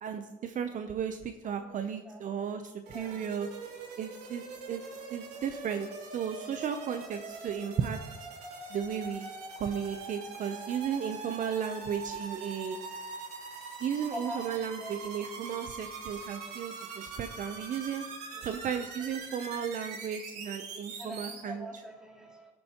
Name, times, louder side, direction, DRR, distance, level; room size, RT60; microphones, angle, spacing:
voice 1, 0.0-3.5 4.0-4.8 5.1-8.0 8.7-9.3 9.6-12.8 13.8-18.0 18.4-21.6, right 8 dB, 50° right, 7 dB, 0.7 m, -35 dB
voice 2, 1.4-1.8 2.0-3.3 10.4-11.9 14.1-15.3 18.3-18.7 21.0-22.5, equal, 5° right, -2 dB, 2.8 m, -46 dB
sound 1, 2.9-21.4, right 4 dB, 75° right, 3.3 m, -43 dB
15.5 x 7.8 x 3.0 m, 1.1 s
cardioid pair, 110°, 17 cm